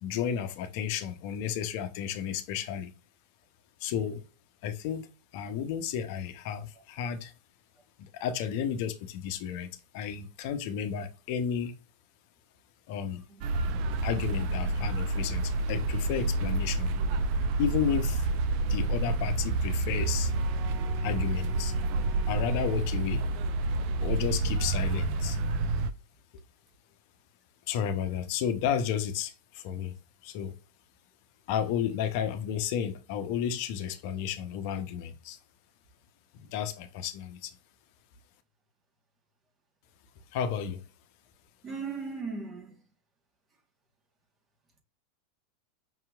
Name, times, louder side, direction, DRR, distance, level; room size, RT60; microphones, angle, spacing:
voice 1, 0.0-2.9 3.8-4.2 4.6-7.3 8.0-11.7 12.9-13.2 14.0-16.9 17.6-18.4 18.7-20.3 21.0-21.7 22.3-23.2 24.0-25.4 27.7-29.9 30.2-30.5 31.5-35.4 36.4-37.5 40.3-40.8, left 8 dB, 60° left, 0.6 m, -32 dB
voice 2, 13.3-14.1 41.6-42.8, right 4 dB, 30° right, 1.1 m, -39 dB
sound 1, 13.4-25.9, right 2 dB, 55° right, 0.4 m, -29 dB
5.4 x 2.8 x 2.3 m
hypercardioid pair, 95°, 0 cm